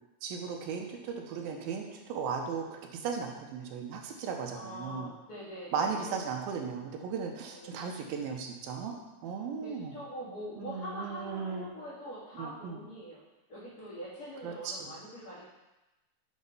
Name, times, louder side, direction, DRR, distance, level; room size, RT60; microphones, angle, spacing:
voice 1, 0.2-5.1 5.7-9.0 9.2-10.0 10.6-11.7 12.4-12.8 14.4-14.9, right 6 dB, 75° right, 2 dB, 2.6 m, -36 dB
voice 2, 4.5-6.1 7.5-7.8 9.6-13.2 13.5-15.5, equal, 25° left, -13 dB, 2.8 m, -43 dB
8.4 x 5.0 x 5.5 m, 1.0 s
omnidirectional pair, 4.5 m